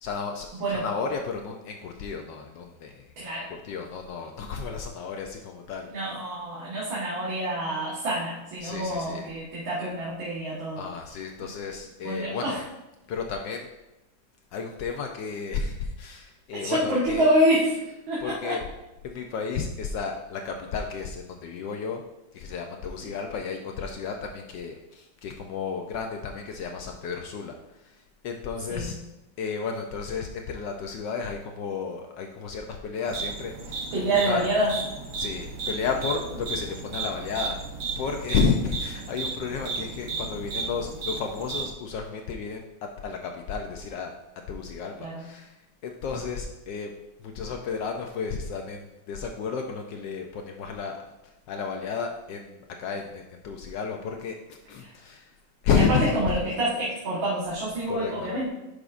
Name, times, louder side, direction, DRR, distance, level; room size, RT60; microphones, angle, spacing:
voice 1, 0.0-3.0 3.6-5.9 8.6-9.3 10.8-12.6 13.1-13.7 14.5-17.3 18.2-18.6 19.0-22.0 22.3-27.6 28.2-29.0 29.4-33.8 34.1-34.4 35.2-37.6 38.0-44.1 44.5-45.5 45.8-46.9 47.2-51.0 51.5-55.2 55.6-56.1 57.9-58.3, left 5 dB, 70° left, 3 dB, 1.2 m, -32 dB
voice 2, 3.2-3.5 5.9-10.9 12.0-12.6 16.5-17.8 18.1-18.6 23.0-23.1 28.7-28.9 33.9-34.7 45.0-45.2 54.8-54.9 55.7-58.5, right 1 dB, 75° right, -7 dB, 2.2 m, -27 dB
sound 1, 33.1-41.7, right 4 dB, 50° right, 1.2 m, -34 dB
10.0 x 6.3 x 2.5 m, 0.98 s
omnidirectional pair, 2.2 m